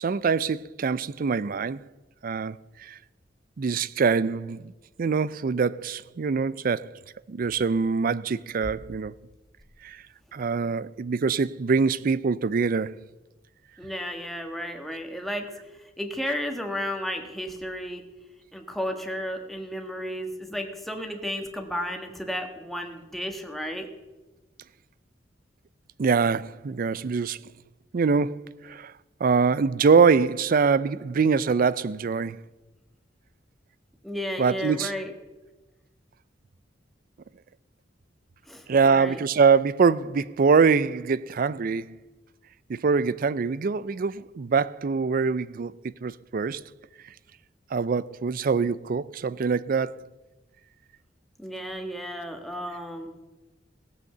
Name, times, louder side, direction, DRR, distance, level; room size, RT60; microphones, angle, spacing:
voice 1, 0.0-1.8 2.2-3.0 3.6-4.7 5.0-6.9 7.3-9.1 9.8-10.0 10.3-13.0 26.0-27.4 27.9-28.9 29.2-32.4 34.4-34.9 38.7-42.0 42.7-46.6 47.7-50.0, right 5 dB, 50° right, 0.4 m, -24 dB
voice 2, 13.8-18.0 18.5-23.9 34.0-35.1 38.5-39.2 51.4-53.2, equal, ahead, 1.5 m, -33 dB
16.0 x 7.9 x 6.8 m
head